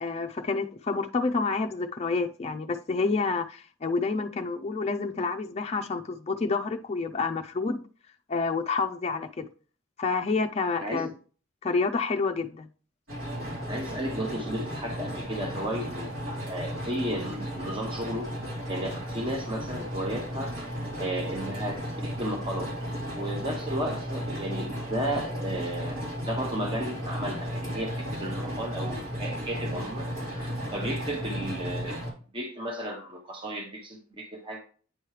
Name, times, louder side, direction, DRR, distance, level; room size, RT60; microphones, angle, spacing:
voice 1, 0.0-7.8 8.3-9.5 10.0-11.1 11.6-12.7, left 4 dB, 30° left, 0.4 m, -28 dB
sound 1, 13.1-32.1, equal, 80° right, 3.5 m, -34 dB
voice 2, 13.7-18.3 18.7-20.5 21.0-22.7 23.1-26.0 26.3-32.0 32.3-34.6, right 1 dB, 25° right, 0.9 m, -34 dB
9.1 x 3.1 x 4.8 m
head